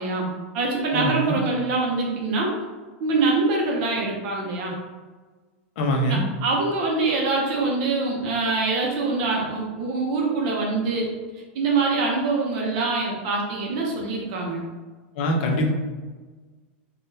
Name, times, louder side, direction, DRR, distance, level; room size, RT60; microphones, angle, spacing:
voice 1, 0.0-2.5 3.0-4.7 6.1-11.1 11.5-14.6, right 3 dB, 40° right, -1 dB, 0.6 m, -24 dB
voice 2, 0.9-1.4 5.8-6.3 15.2-15.7, equal, 50° left, 1 dB, 0.6 m, -23 dB
3.6 x 2.2 x 2.6 m, 1.3 s
supercardioid pair, 170°, 7 cm